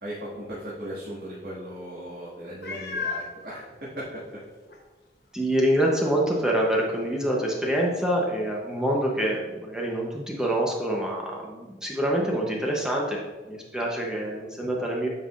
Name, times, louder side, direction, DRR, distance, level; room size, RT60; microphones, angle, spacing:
voice 1, 0.0-4.4, equal, 60° right, -9 dB, 1.9 m, -37 dB
Meow, 2.6-3.3 4.1-4.2 4.7-4.8 8.8-8.9, left 4 dB, 65° left, 1.1 m, -32 dB
voice 2, 5.3-13.2 13.4-15.1, right 1 dB, 5° right, -2 dB, 0.8 m, -26 dB
9.4 x 5.5 x 2.5 m, 1.3 s
head